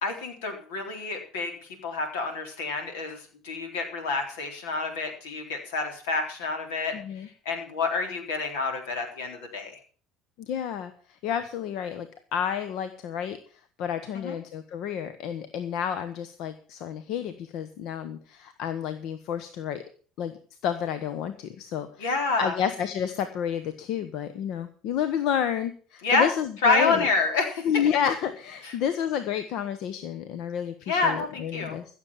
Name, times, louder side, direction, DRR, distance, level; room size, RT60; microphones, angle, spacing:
voice 1, 0.0-1.5 1.8-9.8 14.1-14.4 22.0-22.6 26.0-26.3 26.6-27.8 28.6-28.8 30.9-31.8, left 3 dB, 85° left, 5 dB, 3.8 m, -28 dB
voice 2, 6.9-7.3 10.4-10.9 11.2-13.4 13.8-19.8 20.2-20.4 20.6-22.1 22.4-27.1 27.6-31.8, left 8 dB, 70° left, 11 dB, 1.2 m, -30 dB
15.5 x 7.3 x 7.3 m, 0.43 s
supercardioid pair, 80°, 0 cm